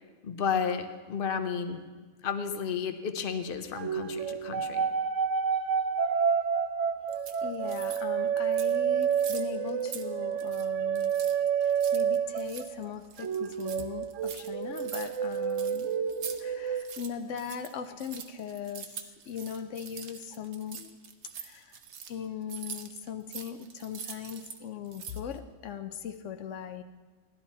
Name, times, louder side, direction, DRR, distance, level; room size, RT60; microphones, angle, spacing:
voice 1, 0.2-1.8 2.2-4.9, left 6 dB, 50° left, 8 dB, 1.0 m, -32 dB
sound 1, 3.7-12.9 13.2-16.8, right 7 dB, 85° right, 1.0 m, -29 dB
sound 2, 7.1-8.0 8.4-8.8 9.0-10.1 10.3-10.7 10.9-16.4 16.7-24.6 24.8-25.4, right 7 dB, 70° right, 1.1 m, -44 dB
voice 2, 7.4-11.1 11.6-15.9 16.4-20.9 21.3-21.8 22.1-26.8, left 8 dB, 80° left, 8 dB, 1.0 m, -39 dB
16.0 x 11.5 x 4.2 m, 1.4 s
omnidirectional pair, 1.2 m